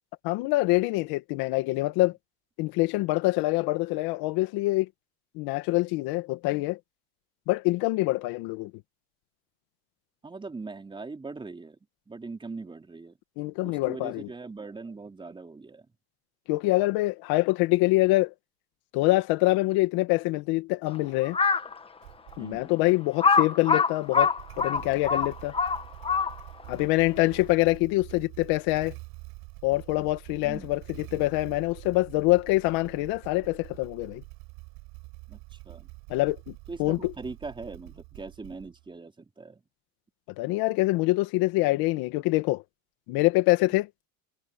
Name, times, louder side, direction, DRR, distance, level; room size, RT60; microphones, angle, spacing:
voice 1, 0.2-2.1 2.6-4.9 5.4-6.8 7.5-8.7 13.4-14.3 16.5-18.3 18.9-21.4 22.4-24.3 24.6-25.5 26.7-28.9 29.6-34.2 36.1-36.5 36.8-37.1 40.4-42.6 43.1-43.9, left 20 dB, 60° left, 2.0 m, -25 dB
voice 2, 10.2-11.8 12.1-13.1 13.6-15.9 22.4-22.7 30.4-30.7 35.3-35.9 36.7-39.6, right 3 dB, 10° right, 4.2 m, -41 dB
Crow, 21.2-21.7 22.3-22.4 23.2-26.6, left 5 dB, 15° left, 1.2 m, -24 dB
Motorcycle / Engine starting, 22.0-22.7 24.0-38.9, right 27 dB, 60° right, 4.9 m, -46 dB
supercardioid pair, 145°, 42 cm